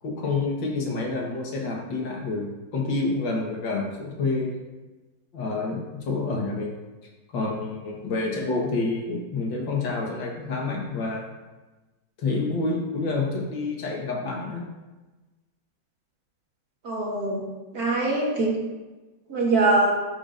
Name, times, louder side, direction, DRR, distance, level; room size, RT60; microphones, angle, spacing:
voice 1, 0.0-4.6 5.3-6.7 7.3-11.3 12.2-14.7, left 3 dB, 85° left, -1 dB, 2.1 m, -28 dB
voice 2, 16.8-17.4 17.7-18.5 19.3-19.9, right 2 dB, 55° right, -3 dB, 2.1 m, -22 dB
11.5 x 5.9 x 2.6 m, 1.2 s
omnidirectional pair, 2.0 m